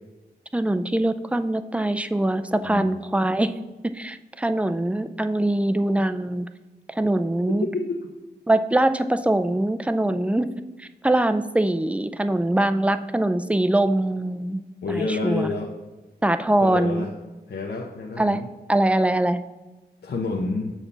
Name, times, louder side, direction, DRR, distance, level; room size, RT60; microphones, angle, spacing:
voice 1, 0.5-3.5 3.9-6.5 6.9-7.7 8.5-10.5 10.8-14.6 14.9-15.5 16.2-17.1 18.2-18.4 18.7-19.4, right 1 dB, 5° right, 10 dB, 0.4 m, -23 dB
voice 2, 7.6-8.1 14.8-15.7 16.6-17.1 17.5-18.5 20.0-20.7, left 3 dB, 70° left, 1 dB, 0.8 m, -28 dB
7.0 x 4.4 x 6.8 m, 1.1 s
wide cardioid pair, 100°, 18 cm